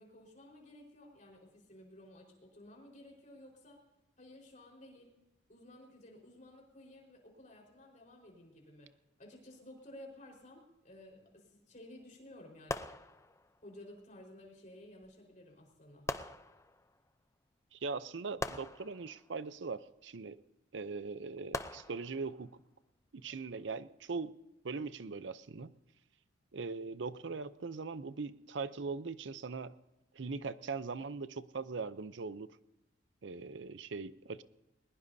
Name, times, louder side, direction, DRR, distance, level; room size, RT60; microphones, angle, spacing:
voice 1, 0.0-3.8 4.2-5.1 5.5-8.9 9.2-12.9 13.6-16.1, left 1 dB, 45° left, -1 dB, 4.5 m, -54 dB
sound 1, 12.7-13.7 15.0-15.1 16.1-17.1 18.4-19.7 21.5-22.6 23.3-23.5, left 2 dB, 15° left, 0.6 m, -42 dB
voice 2, 17.7-20.4 20.7-22.5 23.1-24.3 24.6-25.7 26.5-29.7 30.1-32.5 33.2-34.4, right 4 dB, 75° right, 14 dB, 0.6 m, -40 dB
21.0 x 20.5 x 2.7 m, 0.95 s
head